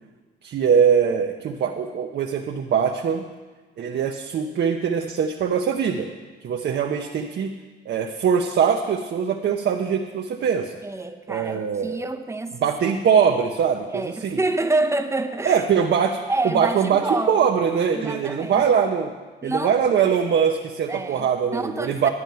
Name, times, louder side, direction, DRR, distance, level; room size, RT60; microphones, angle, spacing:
voice 1, 0.4-3.2 3.8-6.1 6.4-7.5 7.9-10.7 11.3-12.0 12.6-14.4 15.5-16.2 16.5-19.1 19.4-22.1, right 7 dB, 60° right, 2 dB, 0.8 m, -22 dB
voice 2, 10.8-12.7 13.9-15.7 16.3-17.5 17.9-18.8 19.4-19.8 20.9-22.1, right 2 dB, 15° right, 6 dB, 0.8 m, -27 dB
11.0 x 9.0 x 5.6 m, 1.3 s
cardioid pair, 90°, 20 cm